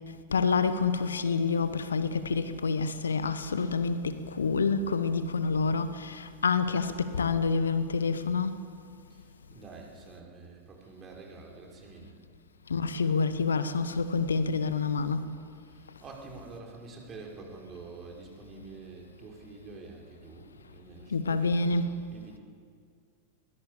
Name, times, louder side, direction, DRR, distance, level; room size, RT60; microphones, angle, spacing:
voice 1, 0.3-8.5 12.7-15.3 21.1-21.9, left 4 dB, 70° left, 1.1 m, -27 dB
voice 2, 9.1-12.2 15.6-21.7 22.1-22.4, right 4 dB, 25° right, 5.4 m, -47 dB
21.5 x 21.0 x 8.6 m
figure-of-eight pair, 90°, 0 cm